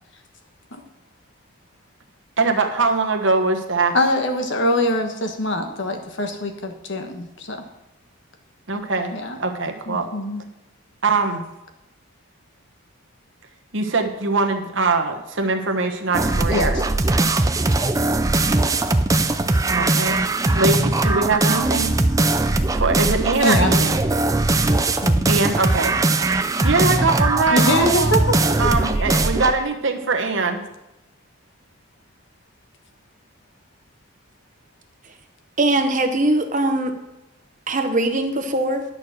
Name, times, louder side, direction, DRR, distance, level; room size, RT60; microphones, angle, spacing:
voice 1, 2.4-3.9 8.7-10.1 11.0-11.4 13.7-16.8 19.7-20.2 20.5-21.9 22.4-24.0 25.2-28.1 28.6-30.6, right 3 dB, 60° right, 4 dB, 1.2 m, -22 dB
voice 2, 3.9-7.6 9.1-9.4 9.9-10.4 16.5-16.7 23.4-23.8 25.0-25.3 27.5-28.2, left 1 dB, 55° left, 5 dB, 1.3 m, -23 dB
sound 1, 16.1-29.6, right 2 dB, 15° right, 0.4 m, -20 dB
voice 3, 35.6-36.9 37.7-38.8, right 2 dB, 35° right, 7 dB, 1.0 m, -21 dB
10.5 x 6.6 x 6.3 m, 0.96 s
head